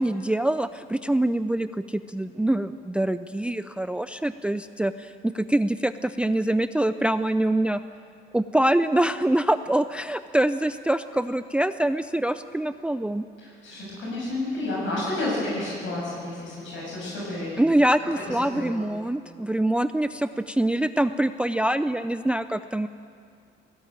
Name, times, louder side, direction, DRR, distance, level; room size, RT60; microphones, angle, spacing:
voice 1, 0.0-7.8 8.3-13.2 17.6-22.9, right 1 dB, 5° right, 12 dB, 0.4 m, -24 dB
voice 2, 13.4-17.6 18.3-18.8, left 2 dB, 75° left, -5 dB, 7.2 m, -31 dB
17.5 x 17.5 x 8.9 m, 2.3 s
cardioid pair, 90°, 20 cm